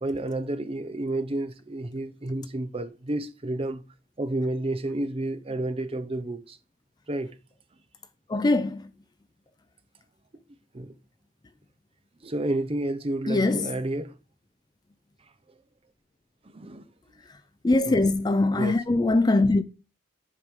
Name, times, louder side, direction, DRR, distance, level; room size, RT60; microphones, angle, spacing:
voice 1, 0.0-3.8 4.2-6.6 7.1-7.3 10.7-11.0 12.2-14.2 16.5-16.9 17.8-18.1 18.6-18.8, right 1 dB, 30° right, 0.7 m, -30 dB
voice 2, 8.3-8.9 13.3-13.7 17.6-19.6, left 2 dB, 20° left, 0.4 m, -22 dB
7.5 x 4.9 x 5.3 m
head